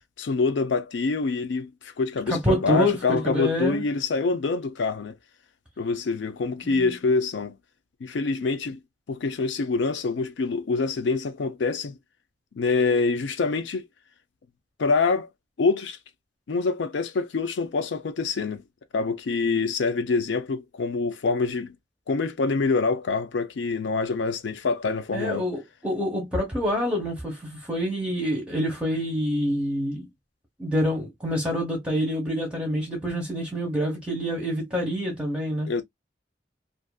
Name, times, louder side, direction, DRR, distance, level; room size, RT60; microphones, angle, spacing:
voice 1, 0.2-5.1 5.8-7.5 8.0-8.8 9.1-12.0 12.6-13.9 14.8-15.3 15.6-16.0 16.5-18.6 18.9-21.8 22.1-25.5 35.7-35.8, left 4 dB, 85° left, 0.4 m, -25 dB
voice 2, 2.3-3.8 6.6-6.9 25.1-30.1 30.6-35.7, equal, 5° right, 0.8 m, -27 dB
2.5 x 2.5 x 2.2 m
head